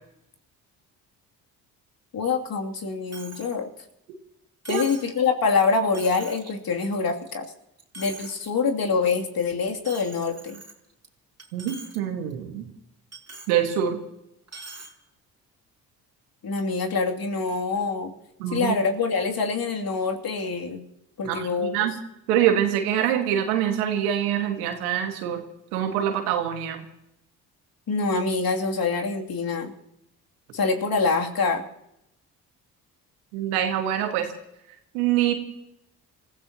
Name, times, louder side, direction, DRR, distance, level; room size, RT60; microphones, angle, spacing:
voice 1, 2.1-3.7 4.7-7.4 8.0-10.6 16.4-18.1 18.5-20.8 21.2-21.9 27.9-29.7 30.5-31.6, left 4 dB, 55° left, 1 dB, 2.9 m, -25 dB
Coin (dropping), 3.1-3.5 3.9-4.0 4.6-5.1 5.6-5.7 5.9-6.5 7.0-7.5 7.8-8.5 8.9-9.1 9.8-11.1 11.4-12.0 12.3-12.4 13.1-13.5 14.5-14.9, right 3 dB, 35° right, 3.6 m, -43 dB
voice 2, 11.5-12.7 13.5-14.0 18.4-18.7 21.2-21.9 22.3-25.4 25.7-26.8 33.3-34.3 34.9-35.3, right 10 dB, 90° right, 5 dB, 1.9 m, -25 dB
29.5 x 15.5 x 2.9 m, 0.83 s
hypercardioid pair, 50°, 43 cm